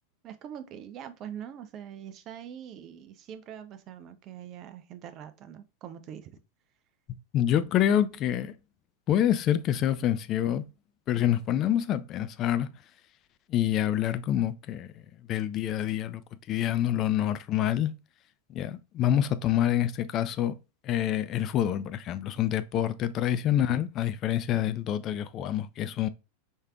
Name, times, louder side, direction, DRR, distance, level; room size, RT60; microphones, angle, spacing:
voice 1, 0.2-6.4 8.1-8.2 10.0-10.1, right 9 dB, 35° right, 0.5 m, -43 dB
voice 2, 7.3-8.5 9.1-10.6 11.1-12.7 13.5-14.9 15.3-16.2 16.5-17.9 18.5-20.5 20.8-26.1, left 11 dB, 35° left, 0.3 m, -27 dB
4.4 x 3.2 x 2.4 m
figure-of-eight pair, 90°, 0 cm